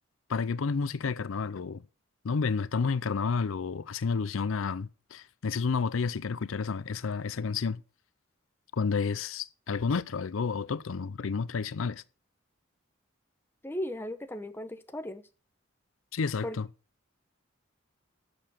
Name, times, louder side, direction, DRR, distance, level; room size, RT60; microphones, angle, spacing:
voice 1, 0.3-1.8 2.2-7.8 8.7-12.0 16.1-16.7, left 5 dB, 80° left, 0.5 m, -30 dB
voice 2, 13.6-15.2 16.4-16.6, left 1 dB, 10° left, 0.9 m, -36 dB
11.5 x 7.0 x 6.5 m
head